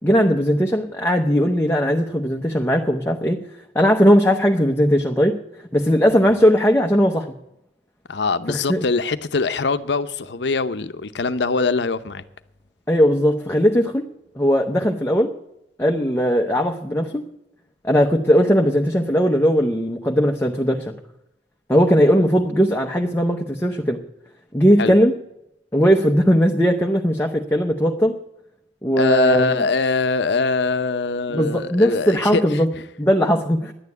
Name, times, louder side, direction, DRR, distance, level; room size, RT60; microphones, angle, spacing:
voice 1, 0.0-3.4 3.7-5.3 5.7-7.3 8.5-8.8 12.9-14.1 14.4-15.3 15.8-17.3 17.8-20.9 21.7-24.0 24.5-25.1 25.7-28.1 28.8-29.6 31.3-32.7 33.0-33.7, equal, 15° left, 0.8 m, -18 dB
voice 2, 8.1-12.2 24.8-24.9 29.0-32.8, left 3 dB, 75° left, 0.7 m, -22 dB
11.0 x 9.2 x 9.5 m
head